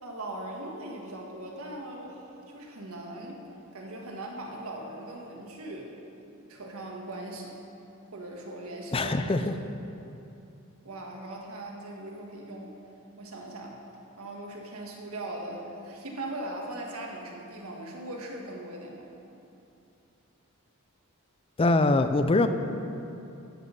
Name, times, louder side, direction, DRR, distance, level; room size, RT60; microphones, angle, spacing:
voice 1, 0.0-3.4 3.7-5.9 6.5-7.6 8.0-9.1 10.8-12.8 13.2-13.8 14.2-19.1, right 1 dB, 80° right, -1 dB, 1.6 m, -39 dB
voice 2, 8.9-9.5 21.6-22.5, left 2 dB, 25° left, 9 dB, 0.5 m, -23 dB
12.5 x 6.3 x 5.3 m, 2.8 s
head